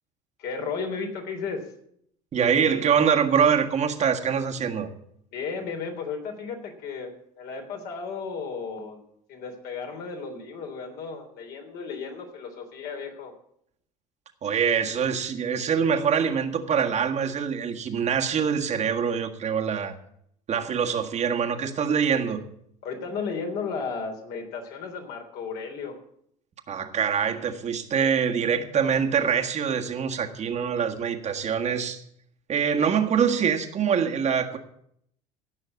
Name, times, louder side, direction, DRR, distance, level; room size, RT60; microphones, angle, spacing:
voice 1, 0.4-1.6 5.3-9.0 9.3-13.3 22.8-26.0, left 5 dB, 55° left, 3 dB, 3.3 m, -34 dB
voice 2, 2.3-4.9 14.4-19.9 20.5-22.4 26.7-32.0 32.5-34.6, right 7 dB, 40° right, 3 dB, 1.7 m, -24 dB
16.5 x 6.4 x 8.3 m, 0.71 s
hypercardioid pair, 70°, 18 cm